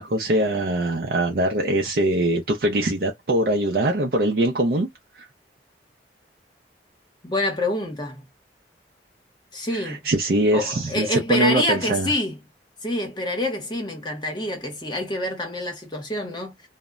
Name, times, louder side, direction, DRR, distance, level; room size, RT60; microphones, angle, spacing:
voice 1, 0.0-4.9 5.2-5.3 9.7-12.1, right 1 dB, 60° right, 0.5 m, -22 dB
voice 2, 7.2-8.3 9.5-10.0 10.5-12.4 12.8-16.5, left 1 dB, 25° left, 0.8 m, -27 dB
2.1 x 2.0 x 3.5 m
head